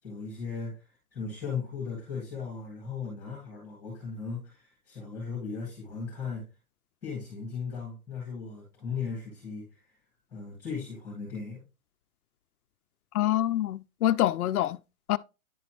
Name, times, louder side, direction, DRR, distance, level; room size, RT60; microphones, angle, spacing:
voice 1, 0.0-6.4 7.0-9.9 10.3-11.6, left 5 dB, 5° left, 2.2 m, -37 dB
voice 2, 13.1-14.8 15.1-15.2, left 13 dB, 80° left, 0.5 m, -25 dB
10.0 x 4.1 x 3.0 m
hypercardioid pair, 170°, 44 cm